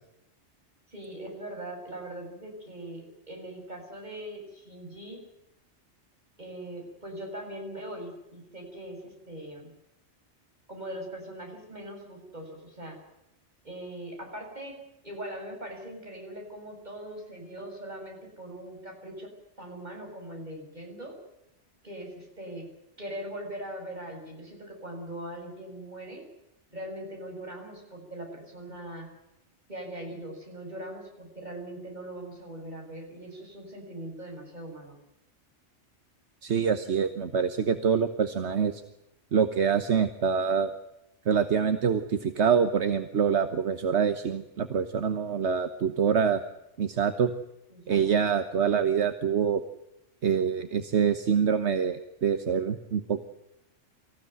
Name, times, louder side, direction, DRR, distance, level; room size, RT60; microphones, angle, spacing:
voice 1, 0.9-5.2 6.4-9.7 10.7-13.0 13.6-14.8 15.0-19.3 19.6-21.2 21.8-22.7 23.0-26.2 26.7-29.1 29.7-35.0 47.7-48.2, right 1 dB, 40° right, 1 dB, 7.3 m, -41 dB
voice 2, 36.4-38.8 39.3-40.7 41.3-46.4 46.8-47.3 47.9-49.6 50.2-53.2, right 7 dB, 70° right, 9 dB, 1.5 m, -25 dB
25.5 x 15.5 x 9.3 m, 0.87 s
omnidirectional pair, 1.2 m